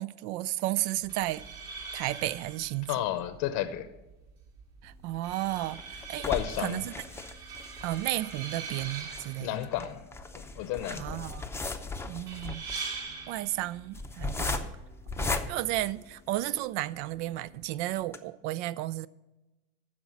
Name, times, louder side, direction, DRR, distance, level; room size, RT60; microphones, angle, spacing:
voice 1, 0.0-1.5 1.9-2.9 4.8-5.8 6.1-6.3 6.6-6.9 7.8-9.5 11.0-11.5 12.0-12.6 13.3-14.7 15.2-19.1, right 16 dB, 70° right, 0.5 m, -33 dB
sound 1, 1.0-16.0, right 4 dB, 50° right, 2.5 m, -44 dB
voice 2, 2.9-3.9 6.2-6.9 9.4-10.1 10.3-11.2, left 12 dB, 60° left, 0.8 m, -32 dB
sound 2, 5.2-16.6 17.1-17.2 17.5-17.6 18.0-18.2, left 3 dB, 5° left, 0.6 m, -37 dB
9.5 x 6.0 x 7.5 m
supercardioid pair, 120°, 34 cm